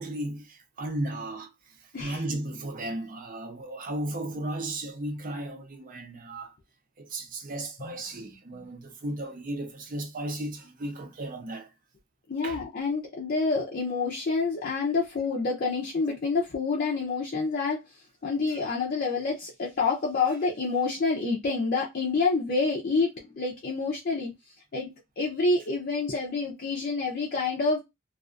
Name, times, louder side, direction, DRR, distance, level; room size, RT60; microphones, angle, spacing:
voice 1, 0.0-6.5 7.0-11.7 12.4-12.6 18.5-18.6, right 1 dB, 40° right, 0.5 m, -35 dB
voice 2, 7.8-8.7 12.3-17.8 18.2-24.3 24.7-24.9 25.2-27.8, left 4 dB, 45° left, 0.5 m, -28 dB
2.3 x 2.3 x 2.4 m
head